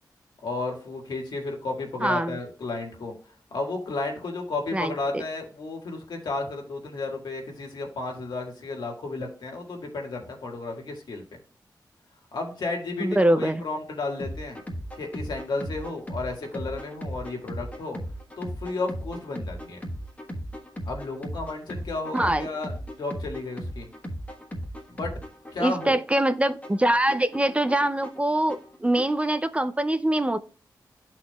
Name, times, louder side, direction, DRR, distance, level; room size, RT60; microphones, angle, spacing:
voice 1, 0.4-3.1 3.5-11.2 12.3-14.6 15.0-18.0 18.4-19.8 20.8-23.9 24.9-25.1 25.5-26.0, left 3 dB, 75° left, 1 dB, 1.7 m, -33 dB
voice 2, 2.0-2.4 4.7-5.2 13.0-13.6 22.1-22.5 25.6-30.4, right 1 dB, 15° right, 12 dB, 0.4 m, -24 dB
sound 1, 14.2-29.2, equal, 20° left, 1.3 m, -37 dB
12.0 x 4.2 x 2.2 m, 0.41 s
cardioid pair, 65°, 7 cm